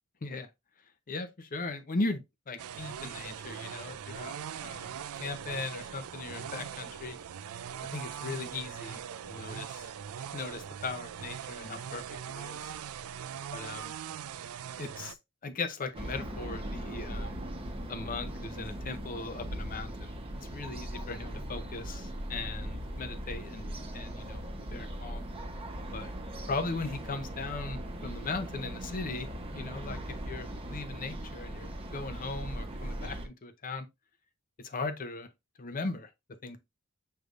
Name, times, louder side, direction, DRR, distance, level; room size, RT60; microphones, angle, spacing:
voice 1, 1.1-4.4 4.6-7.2 7.9-9.0 9.3-9.9 10.3-12.0 12.3-12.7 13.5-13.9 14.8-15.2 15.4-17.4 17.9-20.1 20.5-23.7 23.9-24.4 24.7-25.3 25.9-26.1 26.5-29.3 29.5-33.9 34.6-35.3 35.6-36.1 36.4-36.6, left 3 dB, 40° left, 0.6 m, -38 dB
sound 1, 2.6-15.2, right 8 dB, 85° right, 0.4 m, -41 dB
sound 2, 15.9-33.3, equal, 25° right, 0.9 m, -39 dB
6.5 x 3.3 x 2.5 m
head